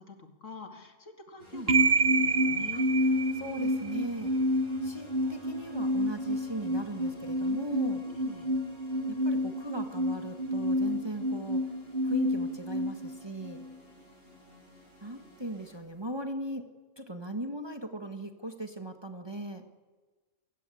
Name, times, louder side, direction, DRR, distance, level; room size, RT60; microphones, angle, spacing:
voice 1, 0.0-2.9 8.0-8.5, left 4 dB, 60° left, 5 dB, 2.8 m, -46 dB
sound 1, 1.4-15.8, equal, 45° left, 6.7 m, -54 dB
sound 2, 1.7-13.7, right 1 dB, 45° right, 1.6 m, -28 dB
voice 2, 3.3-4.3 4.8-8.0 9.1-11.6 12.0-13.6 15.0-16.6 17.0-19.6, right 1 dB, 20° right, 6 dB, 1.4 m, -38 dB
28.0 x 16.0 x 8.4 m, 1.3 s
omnidirectional pair, 1.5 m